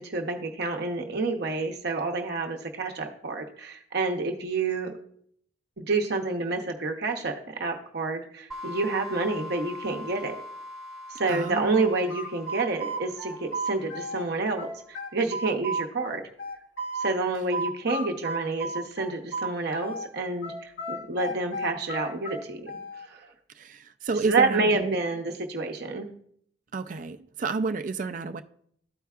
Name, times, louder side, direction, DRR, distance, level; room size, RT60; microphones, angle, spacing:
voice 1, 0.0-4.9 5.8-10.4 11.1-16.2 16.9-22.7 23.0-23.3 24.3-26.1, right 3 dB, 60° right, 0.8 m, -29 dB
sound 1, 8.5-15.0, left 1 dB, 5° right, 1.2 m, -43 dB
voice 2, 11.3-11.9 23.6-25.0 26.7-28.4, right 4 dB, 45° right, 0.4 m, -30 dB
sound 2, 11.7-14.3 14.6-17.1 17.5-20.1 20.4-23.1, right 2 dB, 85° left, 1.5 m, -33 dB
13.5 x 4.6 x 2.4 m
head